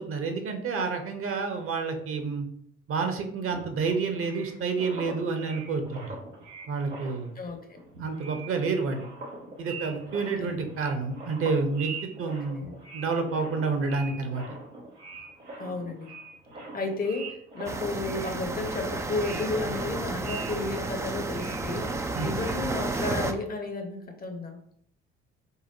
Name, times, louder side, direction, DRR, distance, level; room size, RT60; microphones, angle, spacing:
voice 1, 0.0-2.5 2.9-6.2 6.7-7.3 8.0-9.0 9.6-12.6 12.9-14.4 22.1-22.3, right 4 dB, 40° right, 5 dB, 0.8 m, -29 dB
sound 1, 3.5-7.5 7.8-22.5, right 3 dB, 85° right, 0.9 m, -43 dB
voice 2, 7.4-7.8 10.4-10.6 12.2-12.7 15.6-16.1 16.7-24.6, left 3 dB, 25° left, 4 dB, 0.8 m, -33 dB
sound 2, 17.7-23.3, right 3 dB, 10° right, 0.3 m, -32 dB
5.4 x 2.1 x 3.0 m, 0.67 s
figure-of-eight pair, 50°, 35 cm